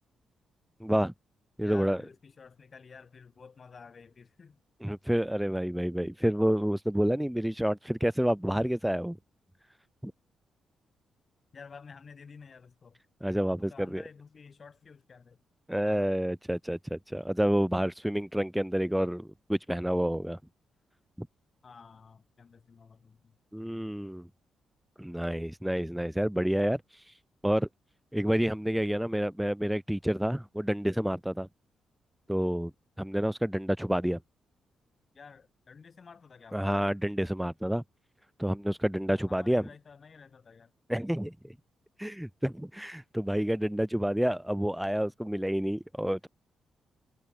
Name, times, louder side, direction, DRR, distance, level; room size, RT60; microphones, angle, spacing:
voice 1, 0.8-1.1 1.6-2.0 4.8-9.2 10.0-10.1 13.2-14.0 15.7-20.4 21.2-21.3 23.5-24.3 25.0-27.1 27.4-27.7 28.1-31.5 32.3-32.7 33.0-34.2 36.5-37.8 38.4-39.7 40.9-41.5 42.0-46.3, equal, 5° right, 0.4 m, -29 dB
voice 2, 1.6-4.6 11.5-13.0 13.6-15.4 15.8-16.1 21.6-23.4 35.1-36.8 39.0-40.7, left 5 dB, 50° left, 5.0 m, -51 dB
hypercardioid pair, 45°, 0 cm